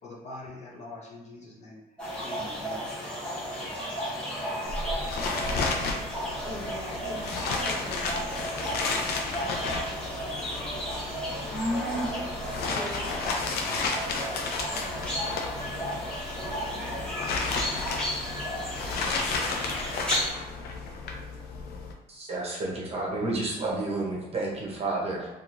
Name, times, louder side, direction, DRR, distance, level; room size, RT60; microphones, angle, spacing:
voice 1, 0.0-1.8 2.2-2.9, left 2 dB, 40° left, -3 dB, 0.8 m, -43 dB
sound 1, 2.0-20.3, equal, 5° left, 1.0 m, -33 dB
sound 2, 4.6-21.9, left 4 dB, 70° left, 0.5 m, -33 dB
voice 2, 6.4-16.8, equal, 20° right, -5 dB, 1.2 m, -46 dB
voice 3, 22.1-25.3, right 2 dB, 35° right, -4 dB, 0.8 m, -30 dB
2.9 x 2.4 x 2.5 m, 1.1 s
cardioid pair, 110°, 17 cm